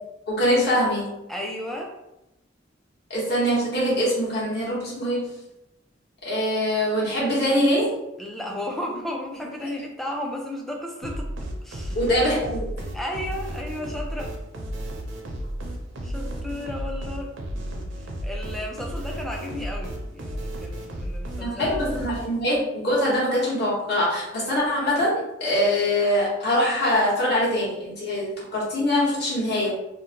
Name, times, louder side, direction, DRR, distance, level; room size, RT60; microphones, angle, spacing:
voice 1, 0.3-1.2 3.1-5.3 6.2-7.9 11.9-12.7 21.4-29.7, equal, 55° left, -7 dB, 1.1 m, -23 dB
voice 2, 1.3-1.9 8.2-11.3 11.6-12.0 12.9-14.3 16.0-17.4 18.2-22.0, left 1 dB, ahead, -1 dB, 0.4 m, -34 dB
sound 1, 11.0-22.6, equal, 85° right, 0.6 m, -33 dB
2.7 x 2.1 x 2.8 m, 0.90 s
head